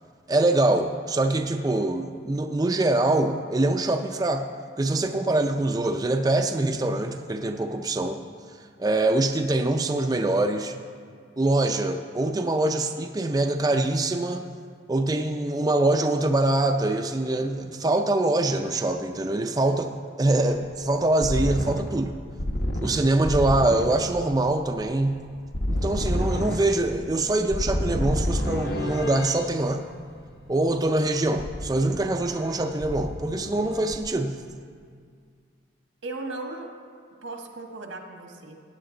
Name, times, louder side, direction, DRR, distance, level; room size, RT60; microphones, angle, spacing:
voice 1, 0.3-4.5 4.8-8.2 8.8-10.8 11.4-14.4 14.9-19.9 20.2-22.2 22.8-25.2 25.7-29.8 30.5-34.4, right 2 dB, 20° right, 5 dB, 0.4 m, -24 dB
sound 1, 21.2-29.5 31.4-32.5 32.8-34.0, left 1 dB, 55° left, 1.0 m, -29 dB
voice 2, 36.0-36.7 37.2-38.5, right 2 dB, 90° right, 3 dB, 1.4 m, -36 dB
16.0 x 9.0 x 3.8 m, 2.1 s
head